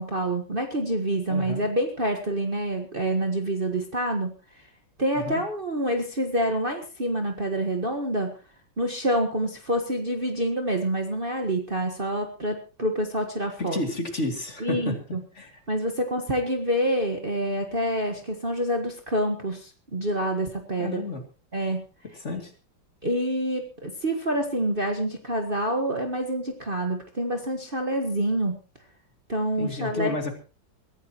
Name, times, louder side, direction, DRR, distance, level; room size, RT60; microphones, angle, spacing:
voice 1, 0.0-4.3 5.0-8.3 8.8-13.8 14.6-15.2 15.7-21.0 21.5-21.8 23.0-28.6 29.3-30.2, right 1 dB, 30° right, 3 dB, 1.7 m, -27 dB
voice 2, 1.3-1.7 5.1-5.4 13.6-15.0 15.3-15.6 20.8-21.2 22.2-22.5 29.6-30.3, left 2 dB, 35° left, 4 dB, 3.0 m, -31 dB
23.5 x 14.5 x 3.0 m, 0.33 s
omnidirectional pair, 2.1 m